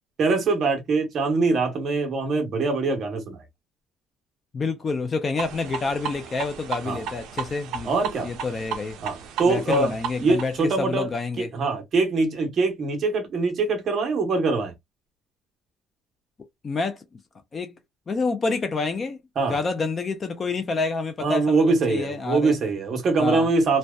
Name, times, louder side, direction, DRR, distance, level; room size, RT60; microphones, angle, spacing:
voice 1, 0.2-3.4 6.9-7.0 7.8-8.3 9.0-9.9 10.2-11.1 11.4-14.7 19.4-19.6 21.2-23.8, right 3 dB, 35° right, 0.8 m, -23 dB
voice 2, 4.5-7.9 8.2-9.0 9.5-11.5 16.6-17.0 17.5-17.8 18.1-19.2 19.5-22.6 23.2-23.5, left 4 dB, 25° left, 0.3 m, -28 dB
sound 1, 5.4-10.7, right 7 dB, 60° right, 0.4 m, -34 dB
2.7 x 2.1 x 2.2 m
cardioid pair, 175°, 0 cm